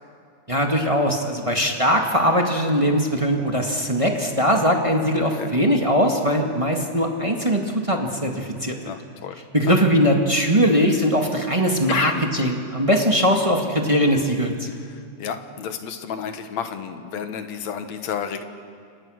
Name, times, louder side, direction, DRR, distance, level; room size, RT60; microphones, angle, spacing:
voice 1, 0.5-8.9 9.5-14.5, equal, 15° right, 2 dB, 1.3 m, -20 dB
voice 2, 8.8-9.4 9.7-9.8 11.9-12.2 14.7-18.4, left 7 dB, 65° left, 8 dB, 2.5 m, -31 dB
29.5 x 27.5 x 6.5 m, 2.2 s
omnidirectional pair, 3.5 m